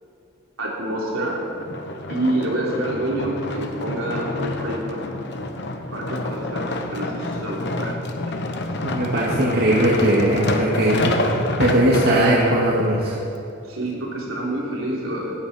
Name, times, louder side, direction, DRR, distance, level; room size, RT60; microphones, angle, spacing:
voice 1, 0.6-1.4 2.1-5.0 5.9-8.0 8.3-8.4 13.6-15.3, right 1 dB, 70° right, -3 dB, 3.6 m, -27 dB
sound 1, 1.6-12.6 13.2-13.3, left 2 dB, 55° left, 1.1 m, -28 dB
voice 2, 8.8-11.2 11.6-13.2, right 1 dB, 50° right, -5 dB, 2.1 m, -19 dB
18.0 x 14.5 x 4.4 m, 2.7 s
head